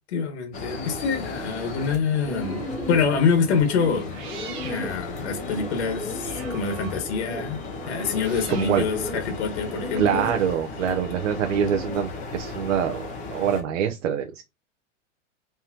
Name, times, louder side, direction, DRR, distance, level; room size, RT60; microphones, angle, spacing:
voice 1, 0.1-2.6 2.9-4.2 4.6-7.6 7.9-10.3, left 5 dB, 60° left, 1.5 m, -25 dB
sound 1, 0.5-13.6, left 3 dB, 20° left, 0.9 m, -36 dB
Bird, 2.3-11.9, left 1 dB, ahead, 1.8 m, -37 dB
sound 2, 2.4-3.0 3.7-10.8, right 6 dB, 30° right, 1.1 m, -45 dB
voice 2, 8.5-8.9 10.0-13.1 13.3-14.4, right 8 dB, 70° right, 0.8 m, -24 dB
4.5 x 3.6 x 2.8 m
supercardioid pair, 165°, 38 cm